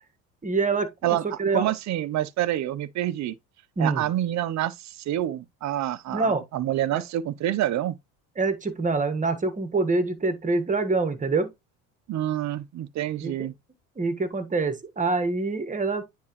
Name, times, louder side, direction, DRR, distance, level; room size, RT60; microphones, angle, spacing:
voice 1, 0.4-1.7 3.8-4.1 6.1-6.4 6.9-7.0 8.4-11.5 13.2-13.3 14.0-16.0, right 3 dB, 20° right, 1.5 m, -25 dB
voice 2, 1.0-3.3 3.8-8.0 12.1-13.5, right 13 dB, 45° right, 0.7 m, -27 dB
9.5 x 3.6 x 3.1 m
supercardioid pair, 100°, 38 cm